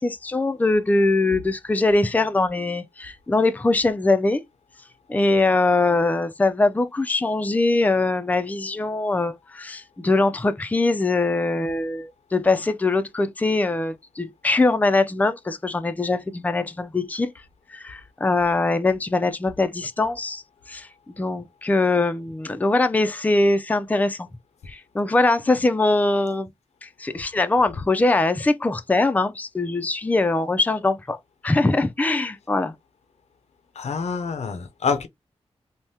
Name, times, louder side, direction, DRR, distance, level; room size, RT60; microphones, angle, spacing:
voice 1, 0.0-4.4 5.1-17.3 17.7-20.4 20.7-24.3 24.7-26.5 26.8-31.2 31.4-32.8, left 2 dB, 15° left, 0.4 m, -22 dB
voice 2, 33.7-35.1, left 5 dB, 90° left, 0.6 m, -26 dB
3.4 x 2.1 x 2.7 m
wide cardioid pair, 80°, 11 cm